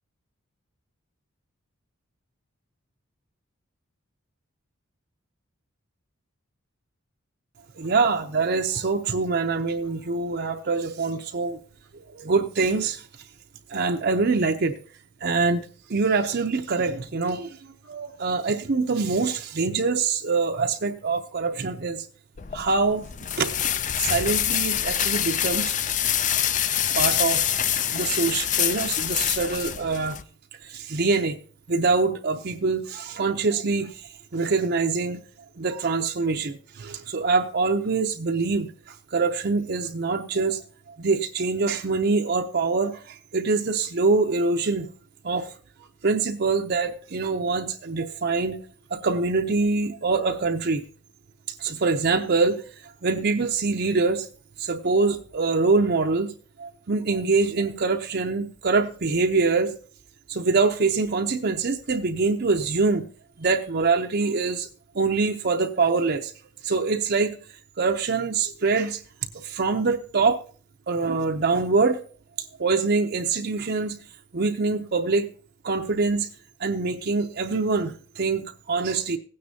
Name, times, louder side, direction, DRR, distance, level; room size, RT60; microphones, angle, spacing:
voice 1, 7.7-11.6 12.1-13.1 13.7-14.7 15.2-17.6 17.8-22.1 22.5-23.0 23.4-23.7 24.0-25.8 26.9-27.4 27.9-30.2 30.6-31.4 31.7-35.2 35.6-40.6 41.0-44.9 45.2-45.5 46.0-48.6 48.9-50.8 51.6-52.6 53.0-54.3 54.6-56.3 56.6-59.7 60.3-63.0 63.4-64.7 64.9-66.3 66.6-67.4 67.8-69.0 69.3-70.4 70.9-72.0 72.6-74.0 74.3-75.3 75.6-76.3 76.6-79.2, right 4 dB, 50° right, 3 dB, 0.6 m, -24 dB
sound 1, 22.4-30.2, left 10 dB, 35° left, 0.4 m, -25 dB
16.5 x 9.5 x 2.8 m, 0.41 s
head